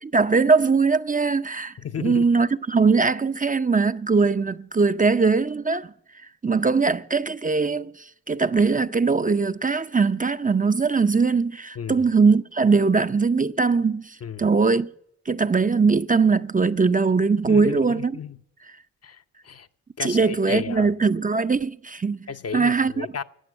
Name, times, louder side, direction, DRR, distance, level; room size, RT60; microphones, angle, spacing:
voice 1, 0.0-5.9 6.4-14.9 15.3-18.2 20.0-23.1, right 4 dB, 25° right, 0.6 m, -21 dB
voice 2, 1.8-2.2 11.7-12.1 14.2-14.5 17.5-18.4 19.0-19.7 20.0-20.9 22.3-23.2, left 7 dB, 50° left, 0.8 m, -33 dB
13.0 x 8.8 x 9.3 m
supercardioid pair, 40°, 32 cm